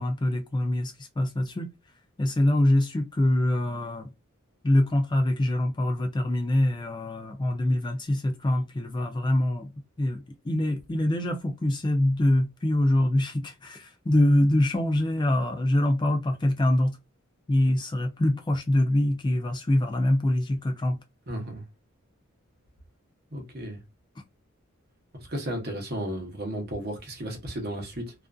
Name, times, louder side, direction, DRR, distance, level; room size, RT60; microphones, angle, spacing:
voice 1, 0.0-1.7 2.2-4.1 4.6-9.7 10.0-17.0 17.5-21.0, left 1 dB, 20° left, 0.3 m, -24 dB
voice 2, 21.3-21.6 23.3-23.8 25.3-28.1, right 1 dB, 45° right, 0.8 m, -34 dB
2.4 x 2.4 x 2.3 m
head